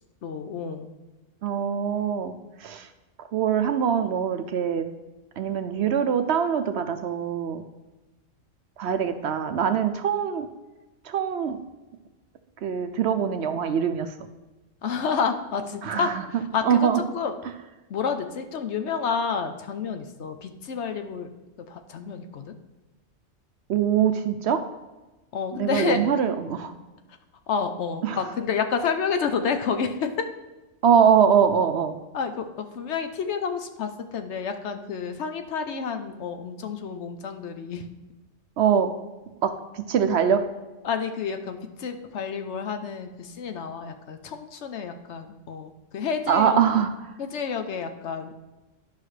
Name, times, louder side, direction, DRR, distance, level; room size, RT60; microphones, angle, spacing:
voice 1, 0.2-0.9 14.8-17.3 17.9-21.3 21.7-22.5 25.3-26.0 27.5-30.1 32.1-37.8 40.8-46.6 47.2-48.3, left 6 dB, 65° left, 7 dB, 0.9 m, -29 dB
voice 2, 1.4-2.9 3.3-4.9 5.4-7.6 8.8-10.5 11.1-11.6 12.6-14.1 15.8-16.2 16.6-17.0 23.7-24.6 25.5-26.7 28.0-28.2 30.8-32.0 38.6-38.9 39.4-40.4 46.3-46.9, right 8 dB, 65° right, 9 dB, 0.8 m, -23 dB
11.0 x 5.7 x 3.3 m, 1.1 s
omnidirectional pair, 1.3 m